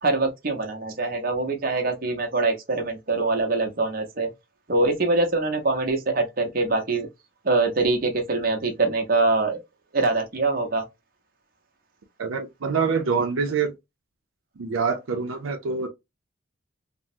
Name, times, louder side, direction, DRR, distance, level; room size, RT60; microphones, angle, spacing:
voice 1, 0.0-4.3 4.7-7.1 7.4-9.6 9.9-10.8, right 3 dB, 45° right, 0.7 m, -24 dB
voice 2, 12.2-13.7 14.6-15.9, right 5 dB, 85° right, 0.5 m, -25 dB
3.4 x 2.0 x 2.6 m
head